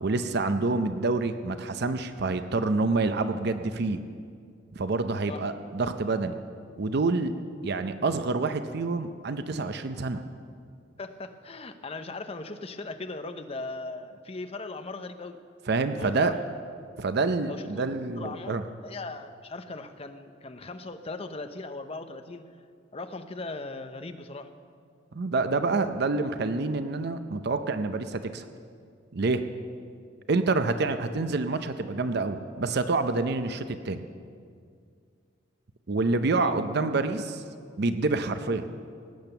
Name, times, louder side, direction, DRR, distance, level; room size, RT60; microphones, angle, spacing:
voice 1, 0.0-4.0 4.8-6.4 6.8-7.3 7.6-10.2 15.7-16.3 17.0-18.6 25.1-28.5 29.1-29.4 30.3-34.0 35.9-37.4 37.8-38.7, right 3 dB, 60° right, 9 dB, 0.6 m, -27 dB
voice 2, 11.0-15.4 16.0-16.4 17.5-17.9 18.2-22.5 22.9-24.5 36.4-36.5, left 3 dB, 30° left, 8 dB, 0.8 m, -38 dB
18.0 x 8.8 x 6.9 m, 2.2 s
head